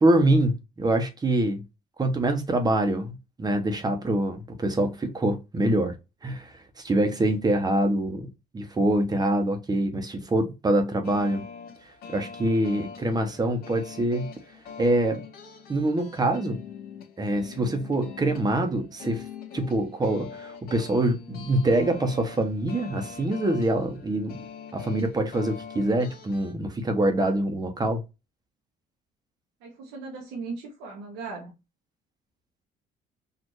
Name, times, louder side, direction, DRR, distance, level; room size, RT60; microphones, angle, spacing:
voice 1, 0.0-1.6 2.0-5.9 6.2-11.4 12.1-14.3 14.8-15.2 15.7-16.6 17.2-19.2 19.5-24.4 24.7-28.0, right 1 dB, 25° right, 1.0 m, -25 dB
sound 1, 11.0-26.5, left 6 dB, 65° left, 1.2 m, -43 dB
voice 2, 29.6-31.5, right 4 dB, 90° right, 1.3 m, -38 dB
4.4 x 2.8 x 3.1 m
cardioid pair, 110°, 17 cm